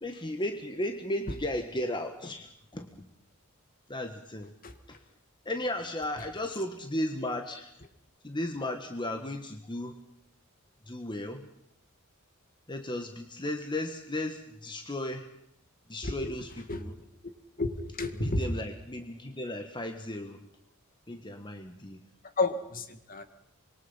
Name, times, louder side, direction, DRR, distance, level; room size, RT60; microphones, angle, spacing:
voice 1, 0.0-3.1 3.9-4.5 4.9-5.0 5.4-7.7 8.2-9.9 10.9-11.5 12.7-15.3 15.9-16.9 18.1-20.4 21.1-22.0, left 1 dB, 20° left, 6 dB, 1.6 m, -35 dB
voice 2, 17.6-18.4 22.4-23.2, left 3 dB, 40° left, 8 dB, 2.3 m, -31 dB
26.0 x 22.5 x 5.8 m, 0.76 s
head